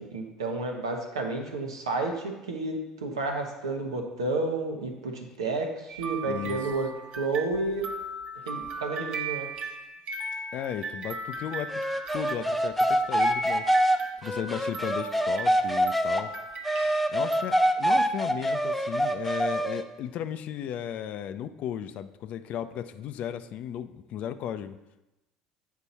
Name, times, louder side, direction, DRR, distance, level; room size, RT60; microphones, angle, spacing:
voice 1, 0.0-6.9 7.2-7.9 8.4-9.5, right 3 dB, 90° right, 2 dB, 1.0 m, -31 dB
sound 1, 5.9-17.6, right 2 dB, 50° right, 1.1 m, -37 dB
voice 2, 6.3-6.6 10.5-11.8 12.1-13.9 14.2-16.3 17.1-24.8, left 10 dB, 55° left, 11 dB, 0.5 m, -35 dB
sound 2, 11.7-16.2 16.6-19.8, right 1 dB, 5° left, 0.6 m, -25 dB
8.5 x 4.5 x 4.1 m, 0.98 s
hypercardioid pair, 70°, 3 cm